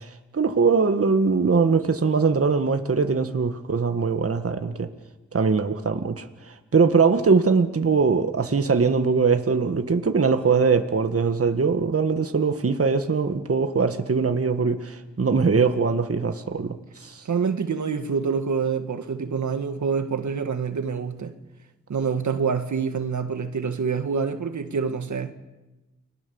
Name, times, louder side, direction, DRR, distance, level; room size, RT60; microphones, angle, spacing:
voice 1, 0.0-4.9 5.3-17.2, right 5 dB, 50° right, 1.8 m, -22 dB
voice 2, 17.3-21.3 21.9-25.3, right 5 dB, 80° right, 1.9 m, -26 dB
29.5 x 21.5 x 7.2 m
cardioid pair, 55°, 29 cm